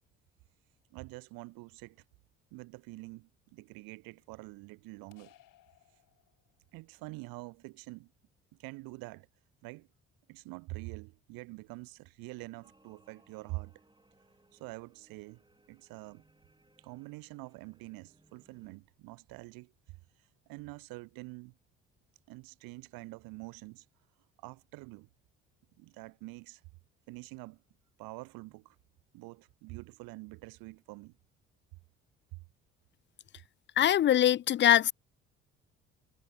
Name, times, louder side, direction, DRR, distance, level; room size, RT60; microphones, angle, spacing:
voice 1, 0.9-2.0 2.5-5.3 6.7-8.1 8.6-9.3 9.6-9.9 10.3-13.7 14.5-16.2 16.8-19.7 20.5-21.5 22.3-23.8 24.4-25.1 25.8-26.6 27.1-27.6 28.0-28.8 29.1-31.2 32.3-32.4, right 23 dB, 65° right, 2.8 m, -46 dB
sound 1, 5.1-6.8, left 14 dB, 60° left, 4.0 m, -63 dB
sound 2, 12.6-18.8, right 2 dB, 10° right, 5.4 m, -67 dB
voice 2, 33.8-34.9, left 11 dB, 30° left, 0.4 m, -23 dB
hypercardioid pair, 50°, 37 cm